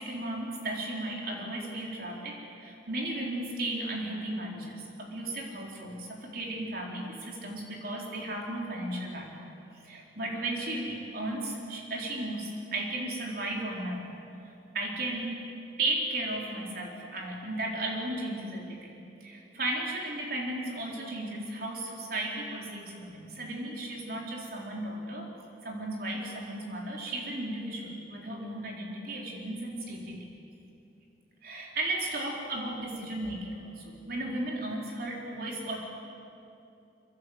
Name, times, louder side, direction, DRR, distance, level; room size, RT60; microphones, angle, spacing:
voice 1, 0.0-9.3 9.9-14.0 14.7-15.3 15.8-18.8 19.2-25.3 25.6-30.2 31.4-35.8, right 1 dB, 55° right, -2 dB, 4.5 m, -35 dB
26.5 x 26.0 x 8.1 m, 2.8 s
head